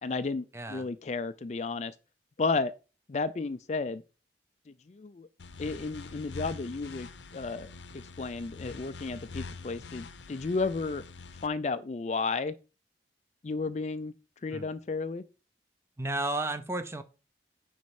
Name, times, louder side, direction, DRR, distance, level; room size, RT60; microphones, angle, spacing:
voice 1, 0.0-1.9 2.4-2.7 3.1-4.0 4.9-5.3 5.6-7.7 7.9-11.0 11.4-12.6 13.4-14.1 14.4-15.2, left 4 dB, 40° left, 0.4 m, -33 dB
voice 2, 0.5-0.9 14.5-14.7 16.0-17.0, right 2 dB, 15° right, 0.7 m, -33 dB
sound 1, 5.4-11.5, left 4 dB, 85° left, 0.7 m, -44 dB
9.5 x 4.3 x 4.8 m
head